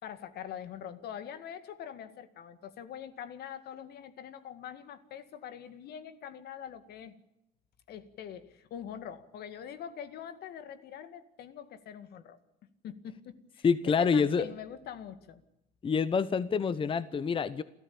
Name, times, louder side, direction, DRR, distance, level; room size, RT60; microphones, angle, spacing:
voice 1, 0.0-7.2 7.9-12.4 12.8-15.4, left 9 dB, 70° left, 12 dB, 2.1 m, -44 dB
voice 2, 13.6-14.5 15.8-17.6, left 5 dB, 30° left, 16 dB, 0.9 m, -27 dB
28.0 x 14.0 x 8.7 m, 0.91 s
cardioid pair, 110°, 17 cm